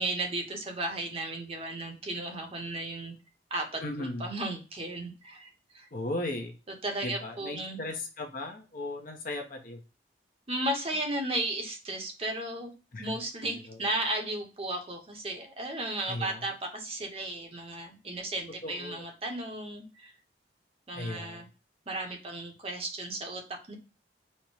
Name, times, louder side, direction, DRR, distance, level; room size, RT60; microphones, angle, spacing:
voice 1, 0.0-3.1 3.5-5.9 6.8-7.8 10.5-12.7 13.0-20.1 20.9-21.5 21.9-23.7, right 1 dB, 35° right, 3 dB, 0.8 m, -35 dB
voice 2, 3.8-4.3 5.9-6.5 7.0-9.8 12.9-13.2 13.7-13.8 16.1-16.4 18.6-19.1 20.9-21.4, left 2 dB, 50° left, 3 dB, 0.8 m, -36 dB
4.3 x 2.1 x 4.6 m, 0.32 s
head